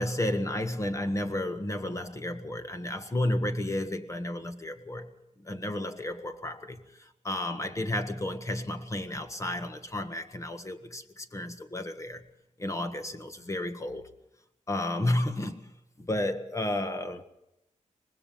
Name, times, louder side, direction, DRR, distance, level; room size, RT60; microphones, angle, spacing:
voice 1, 0.0-5.1 5.4-6.8 7.2-12.2 12.6-14.1 14.7-15.7 16.0-17.2, left 1 dB, 25° left, 1.6 m, -32 dB
25.0 x 20.0 x 5.3 m
wide cardioid pair, 155°, 13 cm